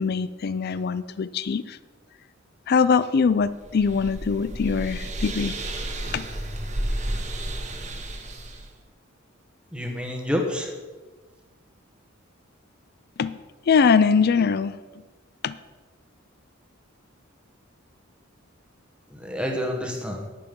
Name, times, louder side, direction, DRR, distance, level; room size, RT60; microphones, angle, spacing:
voice 1, 0.0-1.8 2.7-5.5 6.1-6.3 13.2-13.4 13.7-14.8 15.4-15.6, left 5 dB, 50° left, 15 dB, 0.4 m, -22 dB
sound 1, 3.4-8.7, right 1 dB, 35° right, 1.5 m, -32 dB
voice 2, 9.7-10.7 19.1-20.3, left 1 dB, 5° right, 2 dB, 1.4 m, -28 dB
10.5 x 10.0 x 5.4 m, 1.3 s
head